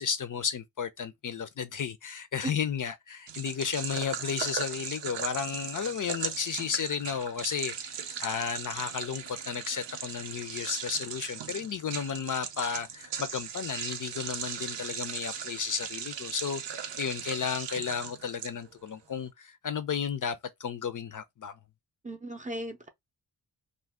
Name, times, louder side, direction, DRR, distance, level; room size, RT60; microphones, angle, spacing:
voice 1, 0.0-21.6, left 7 dB, 50° left, 0.5 m, -33 dB
sound 1, 3.3-18.9, right 8 dB, 85° right, 0.6 m, -38 dB
voice 2, 22.0-22.9, right 1 dB, 20° right, 0.5 m, -36 dB
2.5 x 2.2 x 3.3 m
cardioid pair, 80°, 42 cm